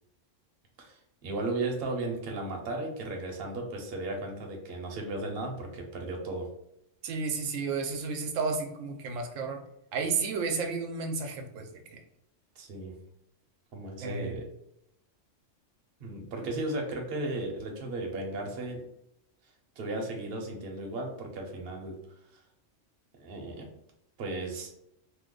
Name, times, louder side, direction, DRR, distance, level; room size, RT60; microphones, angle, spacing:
voice 1, 0.8-6.5 12.6-12.9 13.7-14.5 16.0-18.8 19.8-22.0 22.3-22.4 23.2-23.7 24.2-24.7, right 2 dB, 55° right, 2 dB, 0.8 m, -35 dB
voice 2, 7.0-9.6 9.9-12.0 14.0-14.4, right 4 dB, 85° right, 4 dB, 1.0 m, -32 dB
2.9 x 2.1 x 3.6 m, 0.79 s
omnidirectional pair, 1.3 m